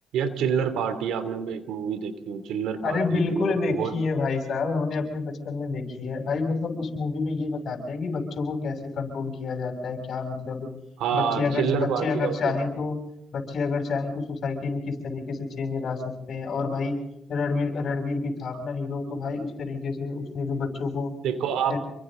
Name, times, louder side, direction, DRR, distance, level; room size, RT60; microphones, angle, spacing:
voice 1, 0.1-3.9 6.0-6.1 11.0-12.5 21.2-21.8, right 7 dB, 85° right, 10 dB, 2.9 m, -27 dB
voice 2, 2.8-10.7 11.1-13.0 13.3-17.0 17.3-21.1 21.7-21.8, left 4 dB, 60° left, 3 dB, 7.1 m, -28 dB
28.5 x 23.5 x 3.9 m, 0.81 s
cardioid pair, 90°, 0 cm